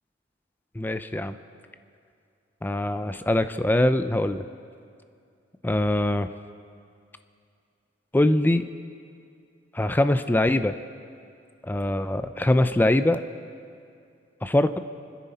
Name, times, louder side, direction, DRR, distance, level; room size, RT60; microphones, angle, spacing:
voice 1, 0.8-1.4 2.6-4.4 5.6-6.3 8.1-8.6 9.7-10.8 11.6-13.2 14.4-14.8, left 1 dB, 10° left, 11 dB, 0.4 m, -23 dB
30.0 x 10.5 x 4.2 m, 2.4 s
head